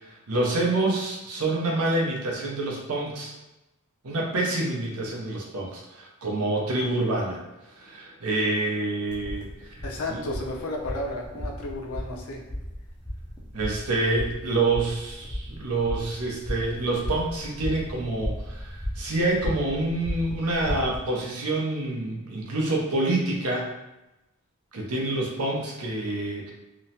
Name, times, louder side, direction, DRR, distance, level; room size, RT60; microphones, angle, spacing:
voice 1, 0.0-3.3 4.0-7.4 7.7-9.7 10.1-10.2 13.5-23.7 24.7-26.5, right 2 dB, 80° right, -2 dB, 0.7 m, -27 dB
sound 1, 9.1-21.0, equal, 5° right, 0.4 m, -35 dB
voice 2, 9.8-12.4, left 1 dB, 70° left, 0 dB, 0.5 m, -33 dB
3.0 x 2.1 x 2.7 m, 0.97 s
head